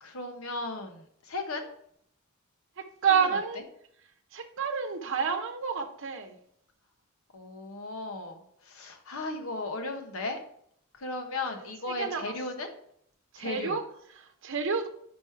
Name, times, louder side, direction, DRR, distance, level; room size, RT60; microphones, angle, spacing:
voice 1, 0.0-1.7 7.3-10.4 11.0-12.7 13.4-13.8, left 2 dB, 70° left, 1.1 m, -36 dB
voice 2, 2.8-3.6 4.3-6.3 11.3-12.7 13.3-14.9, right 6 dB, 65° right, 0.8 m, -30 dB
5.3 x 4.7 x 4.5 m
head